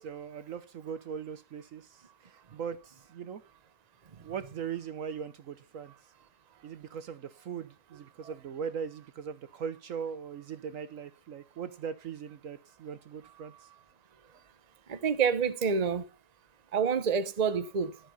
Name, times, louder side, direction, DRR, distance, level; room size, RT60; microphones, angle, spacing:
voice 1, 0.0-3.4 4.2-5.9 6.6-13.5, right 7 dB, 60° right, 1.2 m, -40 dB
voice 2, 14.9-16.0 16.7-18.0, right 6 dB, 30° right, 0.9 m, -27 dB
12.5 x 7.1 x 5.6 m
omnidirectional pair, 1.6 m